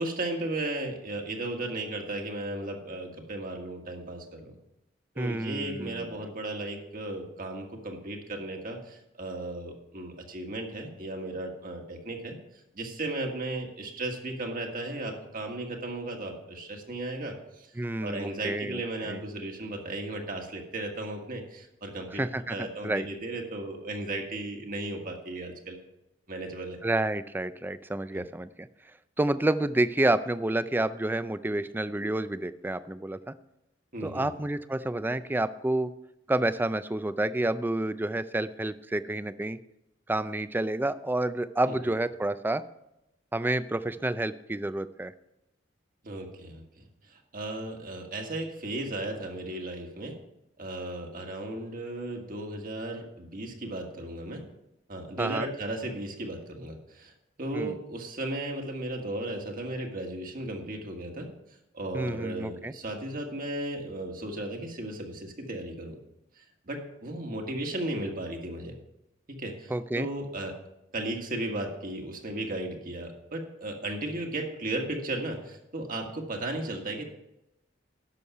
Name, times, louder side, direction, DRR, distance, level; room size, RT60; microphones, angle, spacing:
voice 1, 0.0-4.6 5.2-17.7 18.0-22.2 22.5-25.8 26.3-26.8 28.1-28.2 33.9-34.3 41.7-41.8 46.0-50.2 50.6-54.5 54.9-57.1 57.4-61.3 61.7-66.0 66.4-68.8 69.3-70.6 70.9-77.0, right 2 dB, 45° right, 2 dB, 1.7 m, -35 dB
voice 2, 5.2-6.2 17.8-19.2 22.1-23.1 26.8-28.7 29.2-33.3 34.0-35.9 36.3-39.6 40.1-42.6 43.3-45.1 55.2-55.5 57.5-57.7 61.9-62.7 69.7-70.1, right 1 dB, 10° right, 14 dB, 0.4 m, -29 dB
10.5 x 6.4 x 5.6 m, 0.88 s
head